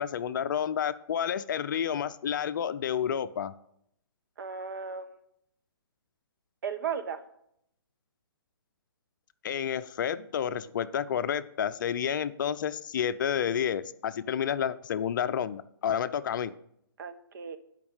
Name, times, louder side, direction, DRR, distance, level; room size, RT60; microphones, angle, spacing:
voice 1, 0.0-3.5 9.4-16.5, left 8 dB, 50° left, 13 dB, 0.6 m, -30 dB
voice 2, 4.4-5.1 6.6-7.2 17.0-17.6, right 6 dB, 50° right, 8 dB, 1.2 m, -35 dB
10.5 x 5.3 x 7.2 m, 0.72 s
hypercardioid pair, 150°, 13 cm